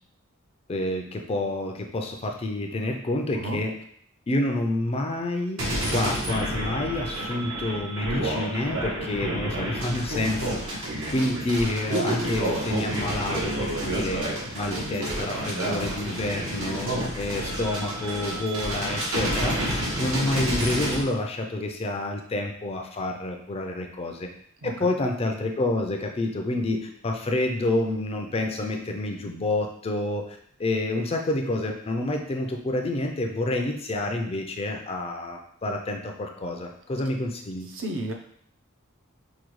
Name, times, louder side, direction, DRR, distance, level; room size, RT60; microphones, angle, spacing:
voice 1, 0.7-3.7 4.3-14.3 14.5-19.6 20.0-24.3 24.6-37.7, left 2 dB, 30° left, 3 dB, 0.4 m, -28 dB
sound 1, 5.6-21.0, right 1 dB, 85° right, 1.2 m, -29 dB
voice 2, 37.7-38.1, right 1 dB, 65° right, 3 dB, 0.6 m, -32 dB
4.9 x 2.3 x 3.0 m, 0.64 s
head